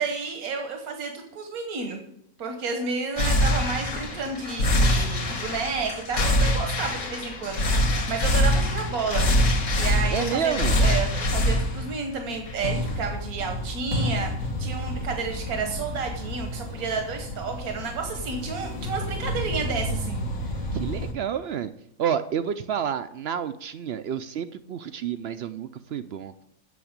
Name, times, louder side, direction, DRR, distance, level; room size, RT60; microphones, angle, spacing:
voice 1, 0.0-2.0 2.4-7.6 8.1-9.2 9.8-20.6, right 4 dB, 85° right, 3 dB, 1.6 m, -31 dB
sound 1, 3.2-21.1, left 1 dB, 60° left, 1.6 m, -26 dB
voice 2, 10.1-10.8 20.7-21.7 22.0-26.3, right 8 dB, 65° right, 12 dB, 0.6 m, -29 dB
8.4 x 7.0 x 8.7 m, 0.77 s
omnidirectional pair, 1.5 m